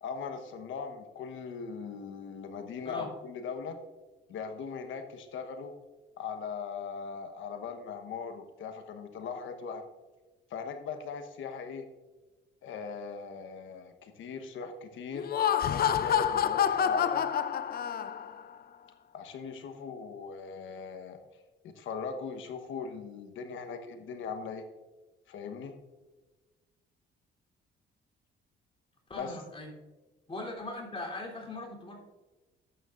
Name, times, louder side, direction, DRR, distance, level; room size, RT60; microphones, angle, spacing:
voice 1, 0.0-3.8 4.3-5.7 6.2-9.8 10.5-11.9 12.6-15.3 15.7-17.3 19.1-21.2 21.6-24.6 25.3-25.7 29.2-29.4, left 5 dB, 80° left, 7 dB, 1.2 m, -39 dB
Laughter, 15.1-18.4, left 9 dB, 50° left, 0.5 m, -27 dB
voice 2, 29.1-29.7 30.3-32.0, left 2 dB, 30° left, -2 dB, 3.4 m, -40 dB
12.5 x 8.9 x 2.6 m, 1.2 s
cardioid pair, 90°, 20 cm